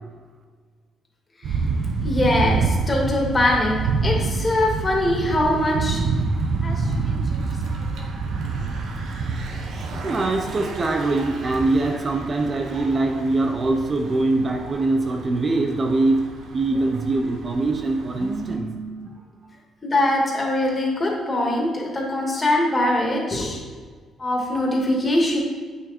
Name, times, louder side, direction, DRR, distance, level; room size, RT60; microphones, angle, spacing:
Thunder / Bicycle, 1.4-18.6, right 4 dB, 75° right, 1.1 m, -28 dB
voice 1, 2.0-6.0 6.6-7.5 7.9-8.1 10.0-10.1 19.8-23.6 24.2-25.4, left 1 dB, 25° left, -1 dB, 2.4 m, -22 dB
voice 2, 10.0-16.2 16.5-19.1, right 2 dB, 35° right, 4 dB, 0.8 m, -23 dB
8.6 x 6.6 x 4.4 m, 1.5 s
cardioid pair, 90°, 0 cm